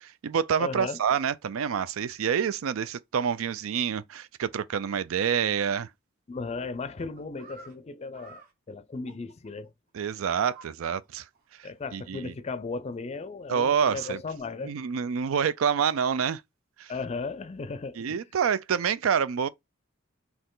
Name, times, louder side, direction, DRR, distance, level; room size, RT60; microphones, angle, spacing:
voice 1, 0.0-5.9 9.9-11.2 11.6-12.3 13.5-14.2 14.6-16.4 16.8-16.9 18.0-19.5, right 7 dB, 85° right, 0.4 m, -27 dB
voice 2, 0.6-1.0 6.3-9.7 11.6-14.7 16.9-18.2, left 4 dB, 30° left, 0.4 m, -36 dB
sound 1, 7.0-7.7 8.1-8.5 9.1-9.7 10.4-10.7 11.0-11.1 11.3-11.5 11.8-11.9 13.6-14.4, right 3 dB, 45° right, 1.1 m, -50 dB
4.3 x 2.9 x 3.8 m
head